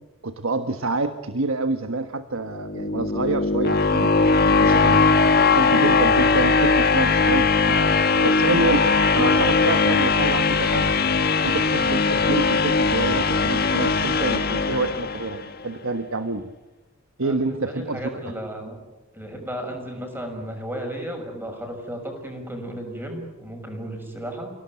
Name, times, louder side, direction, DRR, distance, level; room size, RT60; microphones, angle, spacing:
voice 1, 0.2-4.1 4.6-5.1 5.4-8.0 8.2-10.9 11.4-16.5 17.2-18.0, right 3 dB, 85° right, 8 dB, 1.3 m, -27 dB
sound 1, 2.5-15.5, left 4 dB, 50° left, 1.4 m, -20 dB
voice 2, 17.2-18.8 19.1-24.5, right 1 dB, 10° right, 3 dB, 6.2 m, -34 dB
29.5 x 17.5 x 9.4 m, 1.1 s
head